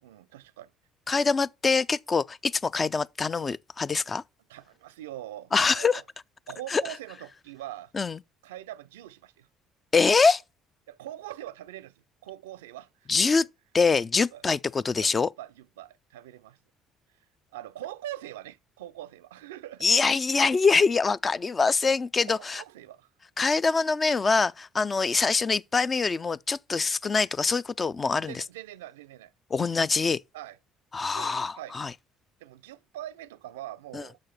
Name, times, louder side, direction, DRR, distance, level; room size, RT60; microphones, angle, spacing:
voice 1, 0.0-0.7 4.5-6.0 6.5-7.9 8.4-9.5 10.9-13.4 14.3-14.4 15.0-16.6 17.5-19.9 22.2-23.1 28.1-29.3 30.3-30.6 31.1-31.8 32.4-34.2, right 13 dB, 80° right, 0.3 m, -42 dB
voice 2, 1.1-4.2 5.5-6.0 6.7-6.8 7.9-8.2 9.9-10.4 13.1-13.4 13.7-15.3 19.8-22.6 23.4-28.4 29.5-30.2 30.9-31.9 33.9-34.0, left 4 dB, 30° left, 0.4 m, -24 dB
6.5 x 6.2 x 5.6 m
hypercardioid pair, 55°, 0 cm